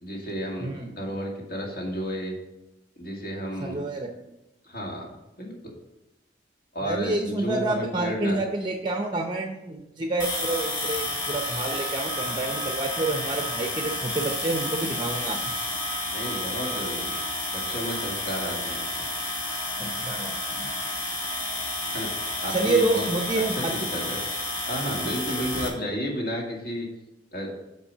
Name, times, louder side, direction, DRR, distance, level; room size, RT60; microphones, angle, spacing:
voice 1, 0.0-2.3 3.0-3.8 4.6-5.5 6.7-8.4 16.1-17.2 17.5-18.9 21.9-22.1 22.4-23.1 23.5-24.2 24.7-26.9 27.3-27.6, equal, 55° left, -1 dB, 2.0 m, -32 dB
voice 2, 3.6-4.1 6.8-15.5 19.8-20.7 22.5-23.9, right 2 dB, 25° right, 3 dB, 0.6 m, -28 dB
sound 1, 10.2-25.7, left 1 dB, 25° left, 1.9 m, -31 dB
7.3 x 4.7 x 6.5 m, 0.94 s
head